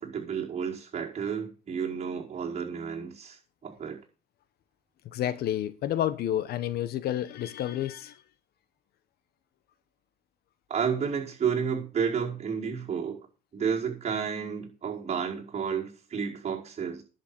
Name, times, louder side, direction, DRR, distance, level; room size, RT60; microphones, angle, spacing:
voice 1, 0.0-4.0 10.7-13.3 13.5-17.0, right 6 dB, 40° right, 5.0 m, -31 dB
voice 2, 5.0-8.2, left 11 dB, 70° left, 1.2 m, -30 dB
11.0 x 7.3 x 7.1 m
cardioid pair, 110°, 17 cm